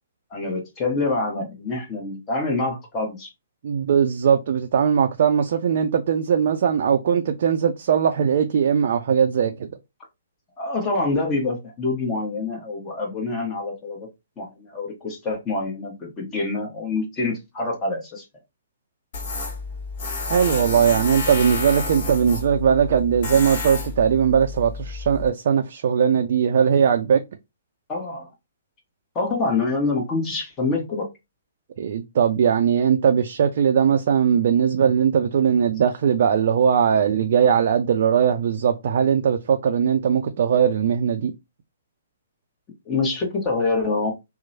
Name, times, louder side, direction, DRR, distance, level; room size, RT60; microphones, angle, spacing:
voice 1, 0.3-3.3 10.6-14.1 14.4-18.3 27.9-28.3 29.1-31.1 42.8-44.1, left 3 dB, 20° left, 1.0 m, -26 dB
voice 2, 3.6-9.7 20.3-27.2 31.8-41.3, right 7 dB, 55° right, 0.4 m, -20 dB
Tools, 19.1-25.3, left 3 dB, 50° left, 1.1 m, -30 dB
2.9 x 2.0 x 2.6 m
figure-of-eight pair, 125°, 0 cm